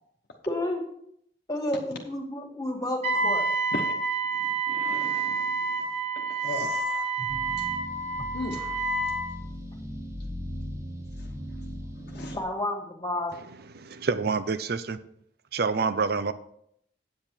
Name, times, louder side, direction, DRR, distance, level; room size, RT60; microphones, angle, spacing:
voice 1, 0.5-0.8 1.5-3.5 7.2-7.6 12.3-13.3, left 1 dB, 20° left, 2 dB, 1.9 m, -31 dB
Wind instrument woodwind instrument, 3.0-9.3, right 3 dB, 40° right, 2.0 m, -28 dB
voice 2, 4.7-5.7 6.2-7.1 8.3-8.8 12.1-12.4, left 2 dB, 65° left, 0 dB, 1.1 m, -37 dB
sound 1, 7.3-12.4, equal, 15° right, 1.2 m, -38 dB
voice 3, 13.7-15.0 15.5-16.3, right 4 dB, 60° right, 13 dB, 0.6 m, -27 dB
8.6 x 7.8 x 4.5 m, 0.70 s
head